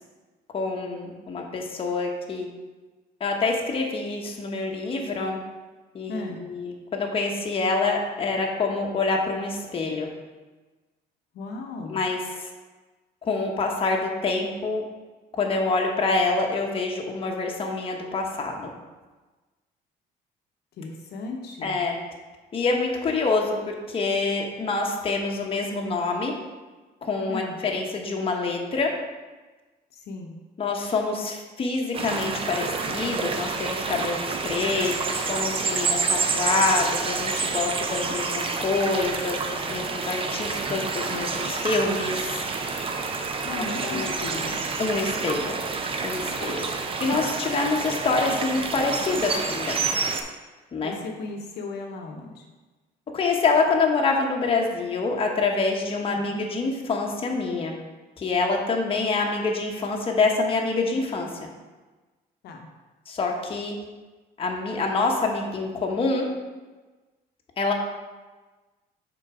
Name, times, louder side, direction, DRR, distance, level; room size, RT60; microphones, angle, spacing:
voice 1, 0.5-2.5 3.2-5.4 5.9-10.1 11.9-12.5 13.2-14.8 15.3-18.7 21.6-22.0 22.5-26.3 27.0-28.9 30.6-42.4 43.6-44.1 44.8-45.6 46.0-46.7 47.0-49.8 50.7-50.9 53.1-57.7 58.2-61.4 63.1-63.8 64.4-66.3 67.6-67.7, left 3 dB, 35° left, 0 dB, 1.0 m, -26 dB
voice 2, 6.1-6.5 11.3-12.0 20.8-21.8 27.3-27.6 29.9-30.4 43.4-44.6 50.8-52.4 56.1-56.4 62.4-62.7, left 3 dB, 75° left, 1 dB, 0.8 m, -36 dB
sound 1, 31.9-50.2, right 4 dB, 35° right, 0.6 m, -28 dB
5.7 x 3.9 x 4.8 m, 1.2 s
cardioid pair, 110°, 17 cm